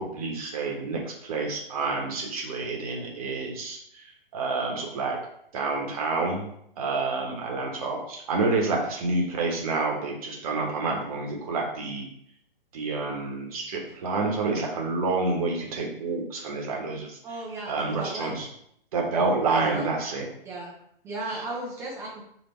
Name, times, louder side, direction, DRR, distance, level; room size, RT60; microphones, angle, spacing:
voice 1, 0.0-5.2 5.5-12.1 12.7-17.2 17.7-18.5 18.9-20.3, right 3 dB, 40° right, 0 dB, 1.0 m, -28 dB
voice 2, 17.2-18.3 19.5-19.9 20.4-20.7 21.0-22.2, right 2 dB, 10° right, -4 dB, 0.5 m, -35 dB
3.4 x 2.8 x 4.3 m, 0.71 s
figure-of-eight pair, 120°, 29 cm